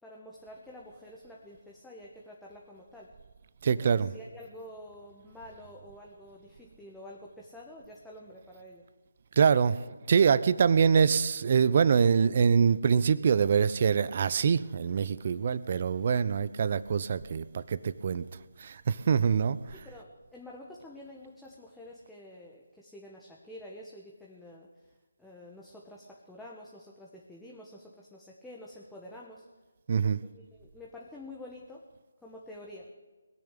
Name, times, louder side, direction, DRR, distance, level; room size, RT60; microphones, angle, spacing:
voice 1, 0.0-3.1 3.7-8.8 15.3-15.6 19.7-24.9 25.2-29.4 30.2-31.8 32.2-32.9, left 1 dB, 5° left, -4 dB, 1.2 m, -48 dB
voice 2, 3.6-4.1 9.4-9.8 10.1-18.2 18.6-19.6 29.9-30.2, right 6 dB, 40° right, 17 dB, 0.6 m, -24 dB
20.5 x 6.9 x 8.3 m, 1.3 s
figure-of-eight pair, 155°, 0 cm